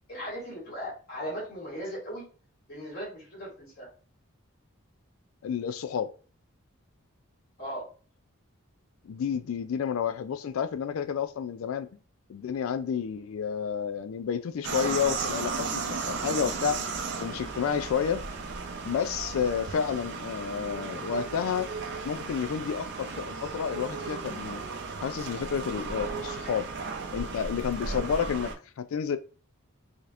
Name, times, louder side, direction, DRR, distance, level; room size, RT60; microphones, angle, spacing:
voice 1, 0.1-2.3 2.7-3.9 7.6-7.9, equal, 45° left, 2.0 m, -37 dB
voice 2, 5.4-6.1 9.0-11.9 12.3-16.9 17.2-18.2 18.8-21.7 22.0-24.6 25.0-26.7 27.1-28.5 28.8-29.2, left 7 dB, 75° left, 0.3 m, -30 dB
sound 1, 14.6-28.6, right 4 dB, 55° right, 0.6 m, -35 dB
4.9 x 2.9 x 2.4 m
head